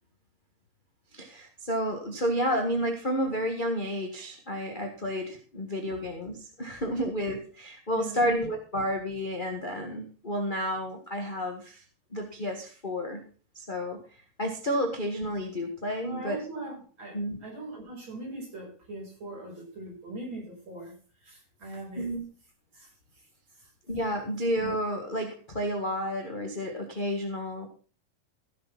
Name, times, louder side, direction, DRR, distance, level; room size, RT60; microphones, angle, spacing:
voice 1, 1.1-11.8 12.1-13.2 13.5-14.0 14.4-16.4 17.1-17.4 22.0-22.2 23.9-27.7, equal, 25° left, 2 dB, 1.0 m, -31 dB
voice 2, 7.9-8.3 16.0-20.9 21.2-22.1 22.7-22.9 23.6-23.7, right 2 dB, 35° right, -1 dB, 6.6 m, -41 dB
16.0 x 7.1 x 5.9 m, 0.39 s
omnidirectional pair, 3.9 m